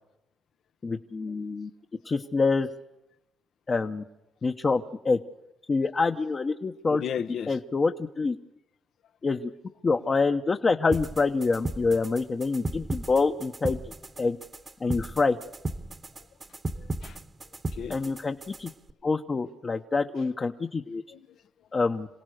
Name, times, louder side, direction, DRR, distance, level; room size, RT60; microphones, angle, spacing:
voice 1, 0.8-1.7 2.0-2.7 3.7-4.0 4.4-5.2 5.7-7.0 7.5-8.4 9.2-9.5 9.8-14.4 14.8-15.4 17.9-18.7 19.0-21.0 21.7-22.1, left 4 dB, 35° left, 0.9 m, -26 dB
voice 2, 6.9-7.6 9.3-9.4 16.2-16.3 16.8-17.2 17.7-18.3 21.1-21.7, left 8 dB, 65° left, 0.8 m, -37 dB
sound 1, 10.9-18.9, right 2 dB, 25° right, 1.1 m, -36 dB
27.5 x 17.0 x 6.5 m
cardioid pair, 90°, 0 cm